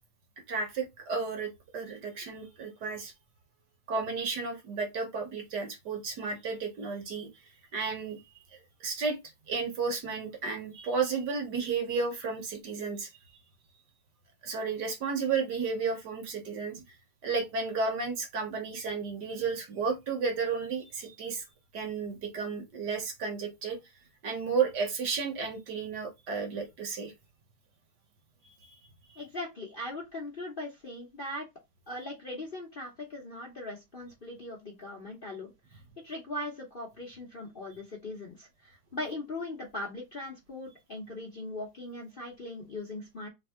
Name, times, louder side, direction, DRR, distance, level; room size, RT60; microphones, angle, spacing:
voice 1, 0.5-3.1 3.9-7.3 7.7-8.2 8.5-9.2 9.5-13.1 14.4-16.9 17.2-21.4 21.7-23.8 24.2-27.1 28.4-28.8, right 5 dB, 60° right, 1.6 m, -33 dB
voice 2, 29.2-31.5 31.9-43.3, left 2 dB, 40° left, 0.8 m, -40 dB
3.5 x 3.4 x 3.5 m
omnidirectional pair, 2.2 m